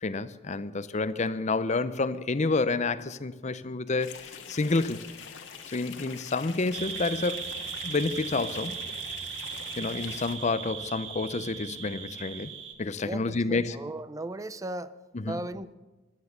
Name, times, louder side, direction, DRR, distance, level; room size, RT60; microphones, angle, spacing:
voice 1, 0.0-5.0 5.7-7.5 7.8-8.8 9.8-12.5 12.8-13.8 15.1-15.4, left 3 dB, 40° left, 0.6 m, -29 dB
sound 1, 4.0-10.4, left 6 dB, 80° left, 1.8 m, -44 dB
sound 2, 6.7-12.7, right 7 dB, 80° right, 1.6 m, -38 dB
voice 2, 13.0-15.0 15.3-15.7, right 2 dB, 20° right, 0.5 m, -36 dB
17.0 x 11.5 x 6.6 m
head